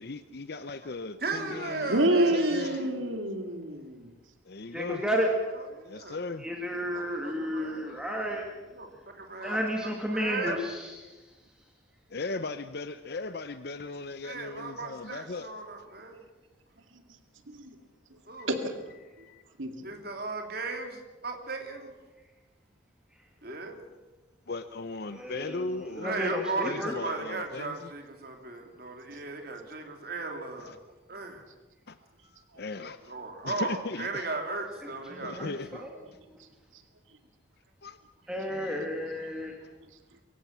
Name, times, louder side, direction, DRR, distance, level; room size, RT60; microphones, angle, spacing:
voice 1, 0.0-2.9 4.4-5.0 5.8-6.5 7.9-8.0 9.4-9.7 10.5-10.6 12.1-15.5 18.4-18.5 19.2-19.4 23.5-23.6 24.5-26.3 26.6-27.9 30.6-30.8 31.9-32.0 32.2-33.1 33.4-34.3 35.2-35.8 37.8-38.0 38.5-39.4, left 3 dB, 50° left, 12 dB, 0.7 m, -38 dB
voice 2, 1.2-2.9 5.7-6.2 6.9-8.0 8.7-9.6 10.1-10.7 14.2-16.2 18.3-18.5 19.8-21.9 23.4-23.8 26.0-30.8 31.1-31.4 33.1-35.9, right 3 dB, 50° right, 4 dB, 3.0 m, -36 dB
voice 3, 1.9-4.1 16.9-17.0 17.5-17.8 18.5-18.7 19.2-19.3 19.6-19.9 29.1-29.2 36.7-36.8, right 1 dB, 80° right, 6 dB, 2.2 m, -28 dB
voice 4, 4.7-5.3 6.4-8.4 9.4-11.1 25.1-26.9 35.1-35.9 38.3-39.5, equal, 5° right, 0 dB, 2.2 m, -32 dB
23.0 x 16.0 x 7.4 m, 1.2 s
head